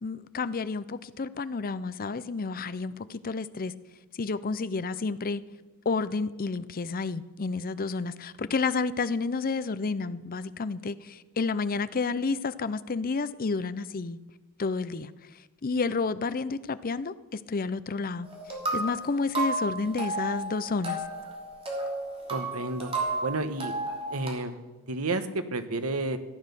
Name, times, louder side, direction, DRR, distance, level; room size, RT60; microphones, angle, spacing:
voice 1, 0.0-3.7 4.1-5.4 5.9-14.2 14.6-15.1 15.6-18.3 18.7-21.0, left 4 dB, 40° left, 15 dB, 0.6 m, -30 dB
sound 1, 18.2-24.3, right 2 dB, 25° right, 3.1 m, -33 dB
voice 2, 22.3-22.9 23.2-23.7 24.1-24.5 24.9-26.2, right 2 dB, 80° right, 10 dB, 1.2 m, -30 dB
15.0 x 10.5 x 6.9 m, 1.2 s
head